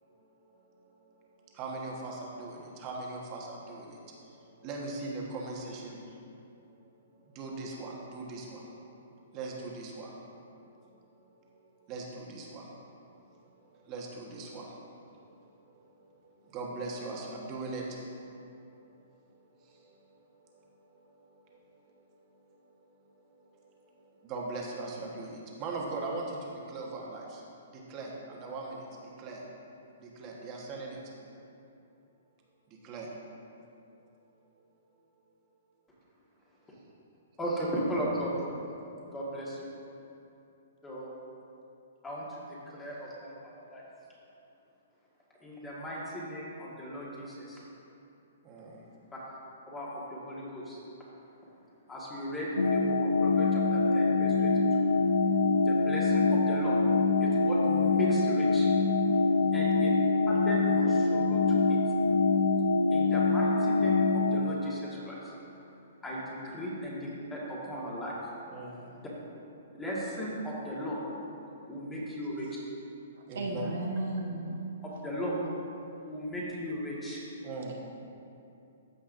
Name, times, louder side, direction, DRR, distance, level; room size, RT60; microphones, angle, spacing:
voice 1, 1.6-3.9 4.6-6.0 7.3-8.6 9.3-10.1 11.9-12.6 13.9-14.7 16.5-17.8 24.3-26.4 26.7-27.4 27.9-28.8 29.2-29.4 30.2-31.0 32.8-33.1 48.5-48.8 68.5-68.8 73.3-73.7 77.4-77.7, right 3 dB, 30° right, -2 dB, 1.3 m, -39 dB
voice 2, 37.4-38.3 39.1-39.7 40.8-41.1 42.0-43.8 45.4-47.6 49.1-49.2 49.7-50.8 51.9-54.9 55.6-56.8 57.2-58.7 59.5-59.9 60.3-61.8 62.9-65.3 66.0-68.2 69.8-71.0 71.7-72.5 75.0-75.3 76.0-77.2, equal, 10° left, -6 dB, 1.7 m, -36 dB
sound 1, 52.6-64.4, left 3 dB, 90° left, 0.5 m, -25 dB
voice 3, 73.3-74.6 75.1-75.6, right 2 dB, 75° right, -1 dB, 1.2 m, -35 dB
14.5 x 5.5 x 2.6 m, 2.7 s
hypercardioid pair, 150°, 0 cm